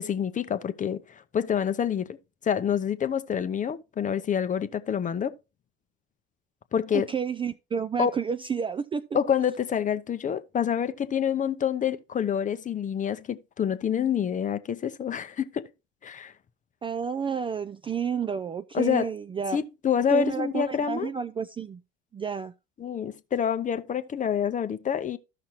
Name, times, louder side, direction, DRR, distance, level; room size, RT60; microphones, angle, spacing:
voice 1, 0.0-2.2 2.4-5.3 6.7-7.1 8.0-8.1 9.1-15.7 16.0-16.3 18.7-19.1 19.5-21.1 22.8-25.2, left 8 dB, 25° left, 0.6 m, -27 dB
voice 2, 6.9-9.0 16.8-19.6 20.1-21.8 22.1-22.5, right 6 dB, 20° right, 0.3 m, -30 dB
13.5 x 5.8 x 2.8 m
hypercardioid pair, 75°, 30 cm